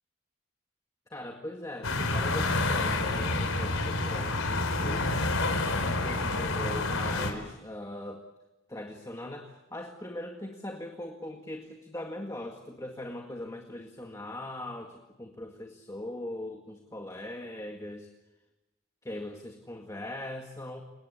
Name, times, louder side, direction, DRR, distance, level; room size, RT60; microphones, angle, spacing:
voice 1, 1.1-5.1 5.8-8.3 8.7-18.1 19.0-20.8, left 1 dB, 15° left, 3 dB, 1.9 m, -40 dB
sound 1, 1.8-7.3, left 2 dB, 90° left, 4.4 m, -28 dB
29.5 x 19.0 x 8.2 m, 1.0 s
head